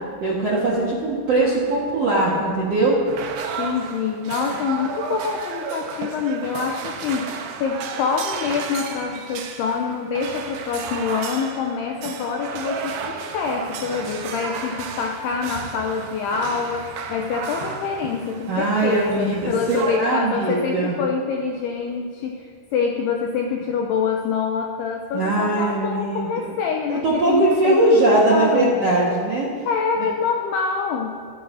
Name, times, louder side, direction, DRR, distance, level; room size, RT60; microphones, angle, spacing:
voice 1, 0.2-3.0 18.5-20.9 25.1-26.5 26.9-29.5, right 2 dB, 65° right, -6 dB, 1.6 m, -20 dB
sound 1, 3.1-20.0, right 6 dB, 80° right, 2.2 m, -33 dB
voice 2, 3.6-27.8 28.1-28.8 29.7-31.1, left 5 dB, 85° left, 3 dB, 2.3 m, -26 dB
24.5 x 12.0 x 2.7 m, 2.2 s
omnidirectional pair, 5.4 m